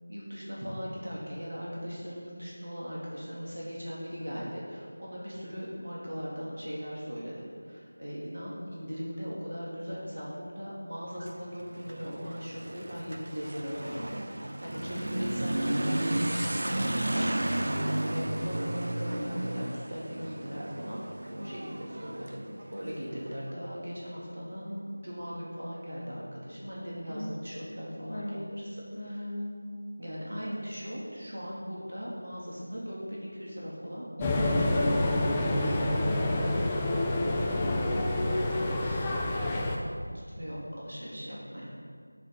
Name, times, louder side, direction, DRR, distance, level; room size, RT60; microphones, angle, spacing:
voice 1, 0.1-17.5 17.7-28.6 29.0-29.2 30.0-39.7 40.1-41.8, equal, 80° right, -5 dB, 2.6 m, -39 dB
Motorcycle / Accelerating revving vroom, 11.1-23.4, right 1 dB, 60° right, 0.7 m, -33 dB
voice 2, 27.9-29.7 41.8-41.9, left 1 dB, 45° left, -2 dB, 1.7 m, -38 dB
sound 1, 34.2-39.8, left 1 dB, 10° left, 0.4 m, -28 dB
9.2 x 9.1 x 4.2 m, 2.1 s
figure-of-eight pair, 175°, 0 cm